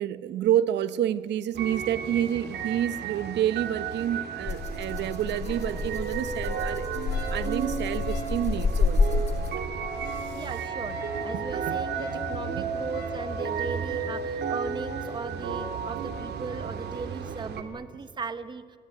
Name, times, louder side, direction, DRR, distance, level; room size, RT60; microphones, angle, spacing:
voice 1, 0.0-9.3 10.1-10.4 11.3-11.8 12.5-12.6, right 11 dB, 90° right, 1.0 m, -29 dB
sound 1, 1.5-17.6, right 6 dB, 70° right, 2.5 m, -33 dB
Rattle (instrument), 4.4-9.8, left 4 dB, 40° left, 2.6 m, -29 dB
Wind instrument woodwind instrument, 7.1-13.3, left 2 dB, 65° left, 4.1 m, -41 dB
voice 2, 10.3-18.8, right 4 dB, 25° right, 1.1 m, -37 dB
28.5 x 20.0 x 9.4 m
cardioid pair, 175°, 18 cm